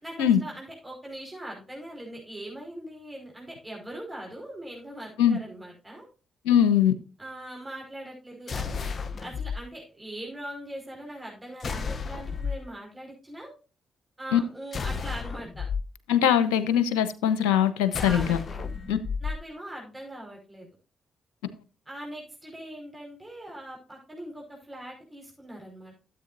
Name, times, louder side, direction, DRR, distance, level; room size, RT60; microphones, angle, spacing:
voice 1, 0.0-6.0 7.2-8.9 9.2-13.5 14.2-15.7 17.9-18.7 19.2-20.7 21.9-25.9, right 1 dB, 15° right, 5.2 m, -41 dB
voice 2, 6.4-6.9 14.3-14.4 16.1-18.4 18.9-19.0, left 9 dB, 85° left, 0.9 m, -21 dB
sound 1, 8.5-9.6 11.6-12.6 14.7-15.8 17.9-19.4, left 5 dB, 50° left, 0.8 m, -32 dB
13.5 x 8.2 x 2.7 m
hypercardioid pair, 45°, 0 cm